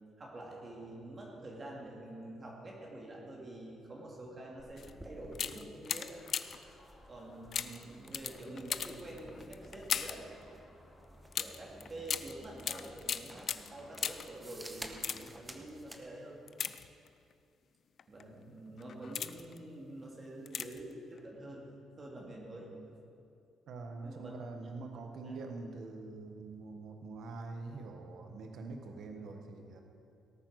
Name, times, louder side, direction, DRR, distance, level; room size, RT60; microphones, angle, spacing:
voice 1, 0.2-6.2 7.1-10.4 11.4-16.4 18.1-21.6 22.0-22.7 24.0-24.3 24.6-24.8 25.2-25.4, right 1 dB, 30° right, -2 dB, 2.1 m, -47 dB
sound 1, 4.6-16.1, right 1 dB, 10° right, 1.0 m, -53 dB
sound 2, 4.8-4.9 5.3-6.7 7.5-10.3 11.3-14.4 14.9-15.5 16.5-17.3 18.0-18.2 18.8-19.6 20.5-20.9 21.2-21.3, left 7 dB, 45° left, 0.5 m, -38 dB
sound 3, 6.0-8.6 10.0-11.5 13.5-15.4, left 1 dB, 20° left, 3.9 m, -63 dB
voice 2, 23.7-29.8, right 3 dB, 65° right, 4 dB, 1.3 m, -44 dB
18.0 x 8.9 x 6.4 m, 2.5 s
cardioid pair, 135°, 0 cm